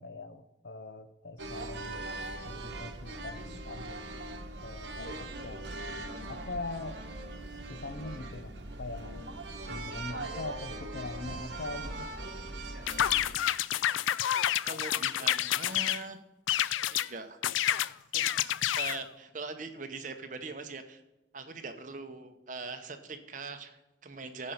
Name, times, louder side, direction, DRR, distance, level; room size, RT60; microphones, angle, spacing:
voice 1, 0.0-2.1 2.5-4.0 4.6-5.8 6.3-7.0 7.7-9.3 9.7-12.1, left 2 dB, 65° left, 0.7 m, -42 dB
sound 1, 1.4-13.3, right 2 dB, 70° right, 1.1 m, -40 dB
sound 2, 12.9-16.0 16.5-17.1 17.4-19.0, left 12 dB, 90° left, 0.3 m, -29 dB
voice 2, 14.6-16.2 16.9-17.4 18.1-21.0 21.3-24.5, right 3 dB, 45° right, 1.0 m, -42 dB
15.5 x 5.5 x 5.7 m
head